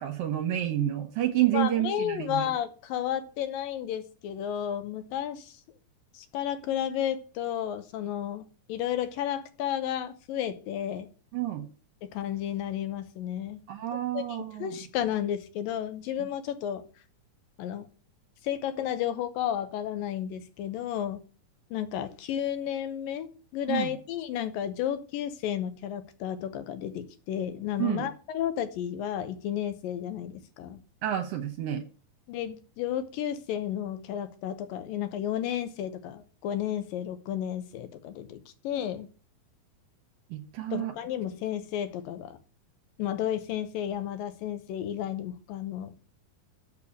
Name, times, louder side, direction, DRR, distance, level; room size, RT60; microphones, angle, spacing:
voice 1, 0.0-2.5 11.3-11.7 13.7-14.8 16.2-16.3 23.7-23.9 27.8-28.1 31.0-31.8 40.3-40.9, right 12 dB, 75° right, 2.5 m, -29 dB
voice 2, 1.5-5.6 6.1-11.1 12.0-13.6 13.9-14.2 14.6-16.8 17.6-17.9 18.4-21.2 21.7-30.8 32.3-39.1 40.7-42.4 43.0-46.1, left 10 dB, 75° left, 2.4 m, -32 dB
6.8 x 6.7 x 7.1 m
omnidirectional pair, 4.3 m